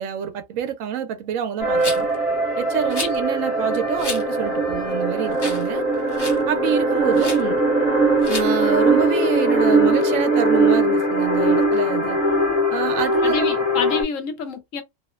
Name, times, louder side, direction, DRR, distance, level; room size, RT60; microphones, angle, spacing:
voice 1, 0.0-2.1 2.6-5.8 6.5-7.6 8.3-12.2 12.7-13.5, right 9 dB, 90° right, 1.0 m, -27 dB
sound 1, 1.6-14.0, right 2 dB, 50° left, 1.1 m, -20 dB
Rattle, 1.8-2.2 2.9-3.2 4.0-4.2 4.7-4.8 5.3-5.7 5.9-6.4 7.1-7.4 8.2-8.5, left 2 dB, 25° left, 0.5 m, -30 dB
voice 2, 13.2-14.8, left 5 dB, 75° left, 1.0 m, -27 dB
2.8 x 2.1 x 2.3 m
omnidirectional pair, 1.4 m